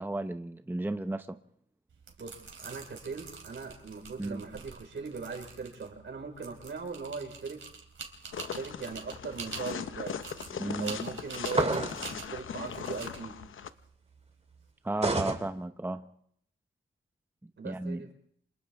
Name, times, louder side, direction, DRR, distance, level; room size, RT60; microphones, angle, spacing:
voice 1, 0.0-1.4 4.2-4.4 10.6-11.0 14.8-16.0 17.6-18.0, right 2 dB, 10° right, 9 dB, 0.8 m, -33 dB
sound 1, 1.9-14.7, right 5 dB, 90° right, 3.7 m, -46 dB
voice 2, 2.2-7.6 8.4-13.4 17.6-18.1, right 5 dB, 70° right, 3 dB, 4.7 m, -40 dB
sound 2, 8.3-13.7, left 8 dB, 85° left, 0.8 m, -39 dB
sound 3, 11.5-12.0 15.0-15.4, right 2 dB, 35° right, 2.5 m, -28 dB
29.0 x 26.5 x 3.5 m, 0.65 s
wide cardioid pair, 85°, 20 cm